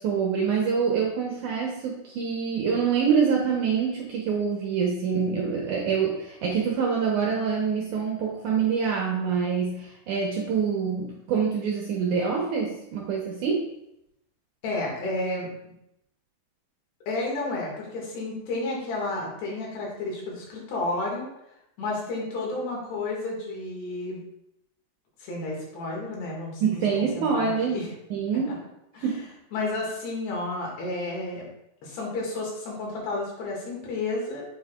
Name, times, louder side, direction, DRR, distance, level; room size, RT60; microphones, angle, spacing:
voice 1, 0.0-13.6 26.6-27.8 28.1-28.5 29.0-29.3, right 6 dB, 70° right, -2 dB, 1.9 m, -26 dB
voice 2, 14.6-15.7 17.1-21.3 21.8-24.2 25.2-26.8 27.2-27.9 28.9-29.1 29.5-31.5 31.8-34.5, left 2 dB, 75° left, -3 dB, 4.1 m, -31 dB
8.3 x 7.5 x 2.4 m, 0.83 s
omnidirectional pair, 4.7 m